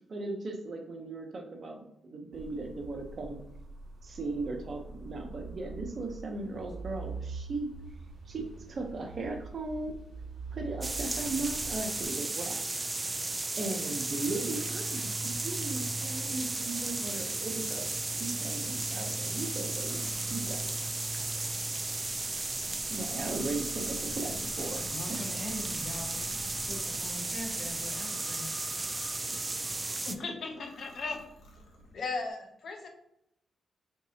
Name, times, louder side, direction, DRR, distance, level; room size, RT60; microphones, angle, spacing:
voice 1, 0.1-3.4 4.0-7.7 8.3-10.0 10.5-12.7 13.6-17.9 18.2-20.0 20.3-20.7 22.9-25.3, right 2 dB, 50° right, 3 dB, 0.7 m, -37 dB
sound 1, 2.3-12.1, right 4 dB, 70° right, 1.0 m, -44 dB
sound 2, 10.8-30.1, right 2 dB, 25° right, 0.3 m, -34 dB
sound 3, 19.5-29.8 30.4-32.0, left 1 dB, 85° left, 0.9 m, -50 dB
voice 2, 24.6-26.2 26.7-28.5, left 1 dB, 40° left, -1 dB, 1.2 m, -42 dB
voice 3, 30.0-31.2 31.9-32.9, left 3 dB, 60° left, 3 dB, 0.6 m, -36 dB
3.9 x 2.6 x 2.7 m, 0.80 s
cardioid pair, 65°, 0 cm